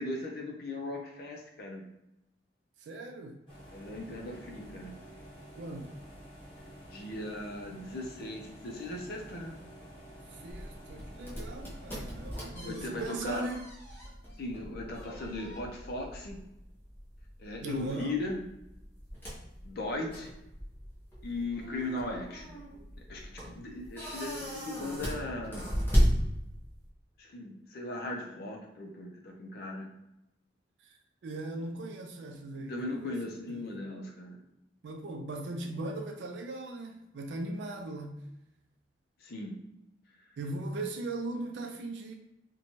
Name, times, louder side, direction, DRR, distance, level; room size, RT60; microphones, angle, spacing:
voice 1, 0.0-1.9 3.7-5.0 6.9-9.6 12.5-13.4 14.4-16.4 17.4-18.4 19.6-20.3 21.2-22.6 23.1-25.7 27.2-29.9 32.7-34.4 39.2-39.6, left 2 dB, 55° left, 0 dB, 0.5 m, -38 dB
voice 2, 2.8-3.4 5.6-6.0 10.3-13.7 17.6-18.1 30.8-33.2 33.5-33.7 34.8-38.2 40.4-42.1, right 2 dB, 75° right, 3 dB, 0.3 m, -39 dB
sound 1, 3.5-12.3, equal, 30° left, 1.0 m, -50 dB
sound 2, 10.5-26.9, equal, 10° left, 0.7 m, -35 dB
2.6 x 2.2 x 2.9 m, 0.87 s
head